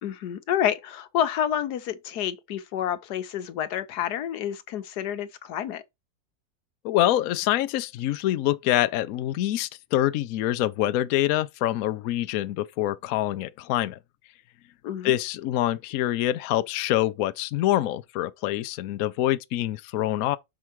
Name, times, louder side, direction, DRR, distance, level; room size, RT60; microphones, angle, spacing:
voice 1, 0.0-5.8 14.8-15.2, left 10 dB, 90° left, 1.4 m, -29 dB
voice 2, 6.8-14.0 15.0-20.4, left 14 dB, 70° left, 1.0 m, -25 dB
6.4 x 4.8 x 4.5 m
omnidirectional pair, 1.7 m